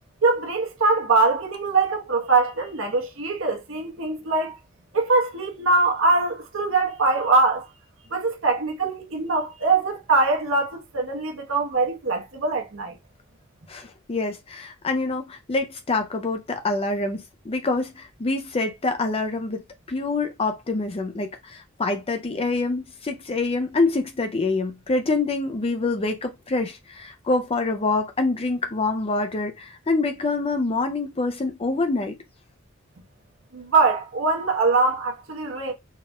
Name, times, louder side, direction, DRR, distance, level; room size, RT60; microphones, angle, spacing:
voice 1, 0.2-4.5 4.9-7.7 8.1-13.0 33.5-35.7, right 3 dB, 70° right, 1.2 m, -22 dB
voice 2, 13.7-32.2, left 3 dB, 30° left, 0.5 m, -26 dB
4.3 x 3.9 x 2.3 m
head